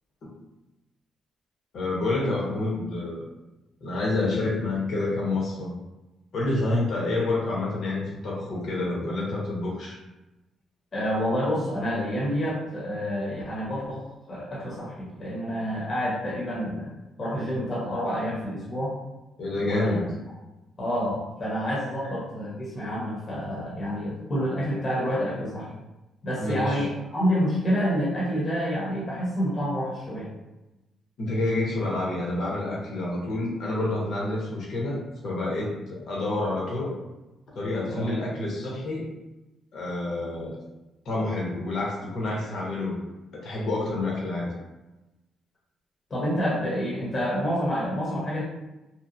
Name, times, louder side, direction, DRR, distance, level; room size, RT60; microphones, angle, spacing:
voice 1, 1.7-3.2 3.8-5.7 6.3-10.0 19.4-20.1 26.4-26.9 31.2-36.9 37.5-39.1 39.7-40.6 41.0-43.0 43.3-44.5, left 2 dB, 65° left, -3 dB, 0.9 m, -28 dB
voice 2, 10.9-16.9 17.2-19.0 19.6-20.0 20.8-25.7 26.2-30.3 37.9-38.1 46.1-48.4, equal, 40° left, -6 dB, 0.8 m, -28 dB
2.8 x 2.1 x 2.5 m, 1.0 s
cardioid pair, 90°, 0 cm